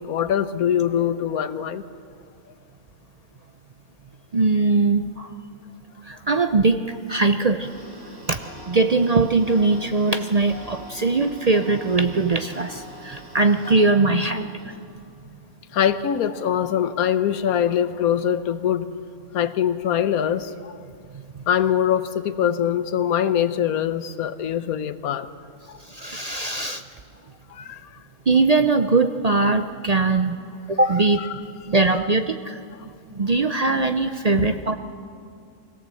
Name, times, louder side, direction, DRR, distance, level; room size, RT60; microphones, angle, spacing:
voice 1, 0.0-1.8 15.7-18.9 19.3-20.8 21.5-25.3 25.7-25.8 27.5-27.9 30.9-31.4 31.9-32.0 34.4-34.5, left 9 dB, 85° left, 12 dB, 1.3 m, -23 dB
voice 2, 4.3-5.3 6.1-6.8 7.1-7.7 8.3-8.4 8.7-14.5 25.9-26.8 28.3-30.4 30.7-32.6 33.1-34.7, right 3 dB, 50° right, 8 dB, 0.4 m, -21 dB
Tick-tock, 7.6-14.8, left 1 dB, 20° right, 7.3 m, -42 dB
24.5 x 17.0 x 7.7 m, 2.3 s
omnidirectional pair, 1.5 m